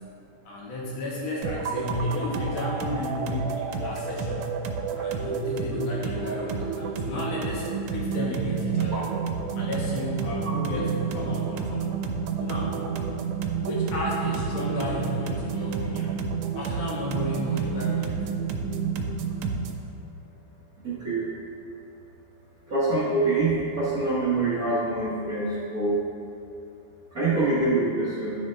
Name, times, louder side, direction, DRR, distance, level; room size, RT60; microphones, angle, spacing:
voice 1, 0.5-4.6 4.9-9.1 9.6-11.8 12.4-12.8 13.6-16.2 16.5-18.2, left 1 dB, 65° left, -5 dB, 2.7 m, -32 dB
sound 1, 1.4-19.9, right 6 dB, 85° right, 2.0 m, -30 dB
voice 2, 20.8-21.3 22.7-26.0 27.1-28.4, right 2 dB, 65° right, -8 dB, 0.9 m, -25 dB
11.0 x 6.4 x 3.4 m, 2.7 s
omnidirectional pair, 3.4 m